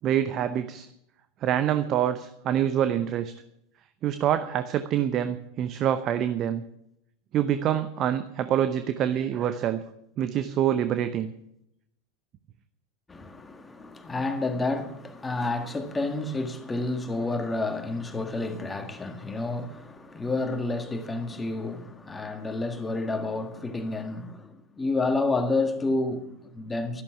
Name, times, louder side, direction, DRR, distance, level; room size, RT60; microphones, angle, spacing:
voice 1, 0.0-0.9 1.4-3.3 4.0-6.6 7.3-9.8 10.2-11.3, right 10 dB, 35° right, 0.8 m, -26 dB
voice 2, 13.1-27.0, left 2 dB, 15° left, 1.7 m, -30 dB
13.0 x 11.5 x 6.0 m
figure-of-eight pair, 85°, 0 cm